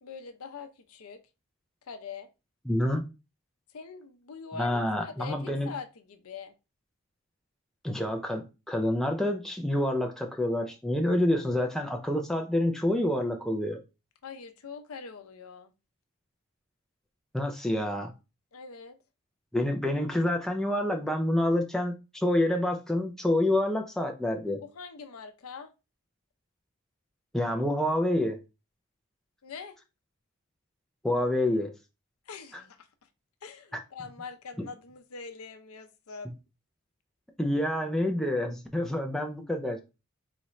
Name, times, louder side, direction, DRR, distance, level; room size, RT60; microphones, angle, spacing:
voice 1, 0.0-1.2 1.9-2.3 3.7-6.5 14.2-15.7 18.5-19.0 24.6-25.7 29.4-29.8 32.3-32.9 33.4-36.3, left 5 dB, 85° left, 0.5 m, -43 dB
voice 2, 2.7-3.0 4.6-5.7 7.8-13.8 17.3-18.1 19.5-24.6 27.3-28.4 31.0-31.7 32.5-32.6 37.4-39.8, left 1 dB, ahead, 0.4 m, -27 dB
4.1 x 2.4 x 3.1 m
head